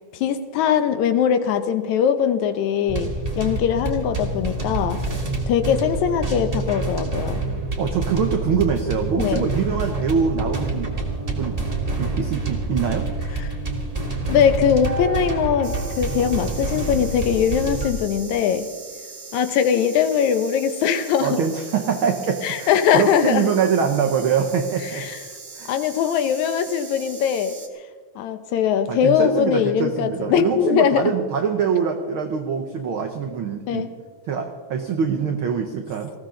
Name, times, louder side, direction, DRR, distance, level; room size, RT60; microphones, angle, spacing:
voice 1, 0.1-3.1 3.4-5.0 5.5-7.4 9.2-9.4 13.4-13.5 14.3-18.7 19.3-21.4 22.4-23.4 24.9-25.2 25.7-27.6 28.2-31.0 33.7-33.9, left 8 dB, 75° left, 10 dB, 2.0 m, -21 dB
sound 1, 2.9-17.9, right 2 dB, 15° right, 1.3 m, -27 dB
voice 2, 7.8-11.6 12.0-13.1 21.2-25.0 25.5-25.7 28.9-33.9 34.3-36.1, right 6 dB, 85° right, 4 dB, 1.1 m, -24 dB
sound 2, 15.6-27.7, right 4 dB, 40° right, 1.0 m, -40 dB
19.5 x 15.5 x 3.8 m, 1.5 s
omnidirectional pair, 3.7 m